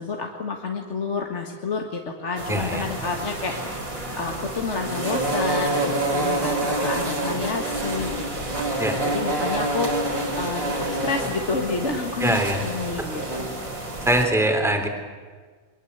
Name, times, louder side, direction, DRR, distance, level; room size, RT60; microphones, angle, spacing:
voice 1, 0.0-3.8 4.2-10.7 11.0-13.5, left 4 dB, 35° left, 2 dB, 1.8 m, -30 dB
sound 1, 2.4-14.3, right 2 dB, 40° right, 4.4 m, -27 dB
voice 2, 2.5-2.8 8.8-9.0 12.2-12.6 13.0-13.1 14.0-14.9, right 1 dB, ahead, 4 dB, 2.9 m, -22 dB
23.0 x 23.0 x 8.0 m, 1.5 s
omnidirectional pair, 2.2 m